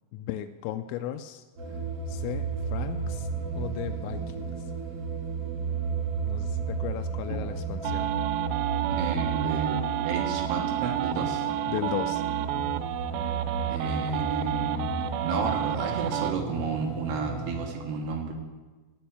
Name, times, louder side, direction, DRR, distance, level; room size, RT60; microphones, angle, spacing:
voice 1, 0.1-1.8 2.1-3.3 3.6-4.7 6.3-8.1 11.7-12.2, left 12 dB, 85° left, 7 dB, 3.0 m, -36 dB
sound 1, 1.6-17.7, right 5 dB, 45° right, 2.1 m, -33 dB
sound 2, 7.8-16.3, right 12 dB, 90° right, 3.4 m, -30 dB
voice 2, 8.9-11.5 13.7-18.3, right 5 dB, 75° right, 2 dB, 2.6 m, -32 dB
15.0 x 5.4 x 9.1 m, 1.3 s
omnidirectional pair, 6.0 m